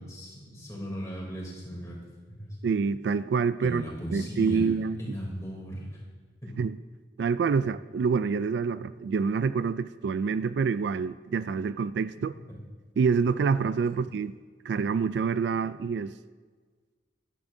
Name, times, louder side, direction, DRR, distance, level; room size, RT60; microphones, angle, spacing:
voice 1, 0.0-2.0 2.3-2.5 3.6-4.7 5.0-5.9 6.4-6.6 12.3-12.4, equal, 20° left, 3.2 m, -37 dB
voice 2, 2.6-3.8 4.1-5.1 6.6-6.8 7.2-12.4 13.0-14.3 14.7-16.1, right 5 dB, 75° right, 0.3 m, -27 dB
16.0 x 12.5 x 2.7 m
head